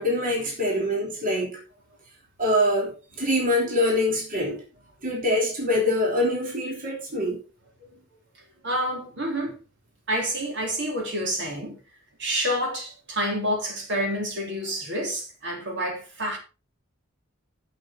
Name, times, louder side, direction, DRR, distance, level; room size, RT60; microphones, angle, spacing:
voice 1, 0.0-1.6 2.4-4.6 5.0-7.4, left 1 dB, 40° right, 3.1 m, -24 dB
voice 2, 8.6-9.6 10.1-11.8 12.2-16.4, equal, 60° right, 3.4 m, -28 dB
11.5 x 7.0 x 4.4 m
head